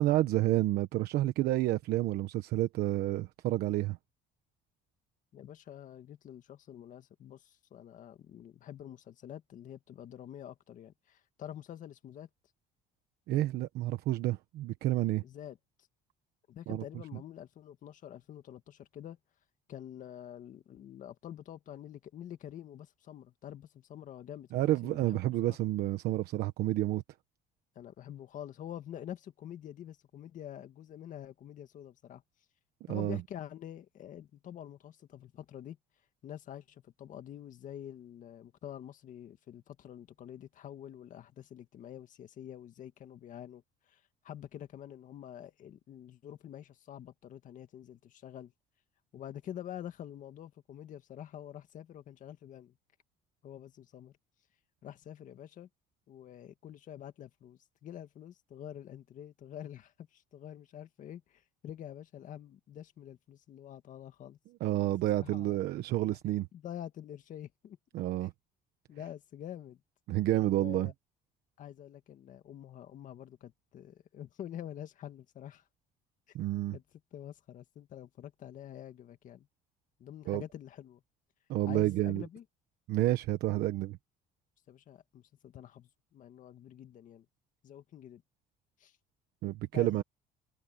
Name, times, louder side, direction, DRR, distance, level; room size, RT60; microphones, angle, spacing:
voice 1, 0.0-4.0 13.3-15.2 16.7-16.8 24.5-27.0 32.9-33.2 64.6-66.5 67.9-68.3 70.1-70.9 76.3-76.7 80.3-80.4 81.5-82.2 82.9-84.0 89.4-90.0, right 15 dB, 75° right, 1.1 m, -29 dB
voice 2, 5.3-12.3 15.2-15.6 16.5-19.2 19.7-25.2 25.5-25.6 27.8-32.2 32.9-35.8 36.2-48.5 49.1-52.8 53.4-54.2 54.8-55.7 56.1-64.4 65.2-65.6 66.5-67.8 68.2-68.3 68.9-69.8 70.4-70.9 71.6-75.7 76.3-76.4 76.7-79.5 80.0-81.0 81.7-82.4 84.7-87.3 87.6-88.2 88.8-89.0 89.7-90.0, left 10 dB, 50° left, 2.0 m, -47 dB
open air
cardioid pair, 145°, 17 cm